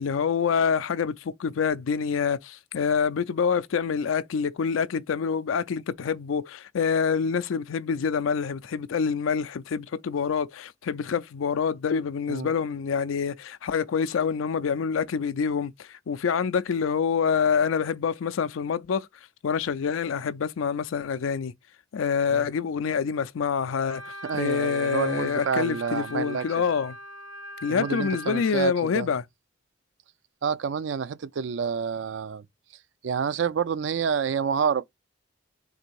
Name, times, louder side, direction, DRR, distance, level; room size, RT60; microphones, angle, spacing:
voice 1, 0.0-19.1 19.4-21.5 21.9-26.9 27.6-29.2, left 6 dB, 85° left, 0.4 m, -26 dB
Wind instrument woodwind instrument, 23.9-28.5, equal, 90° right, 1.5 m, -40 dB
voice 2, 24.2-26.6 27.7-29.1 30.4-32.4 33.0-34.8, right 6 dB, 70° right, 0.4 m, -28 dB
3.9 x 2.6 x 4.5 m
head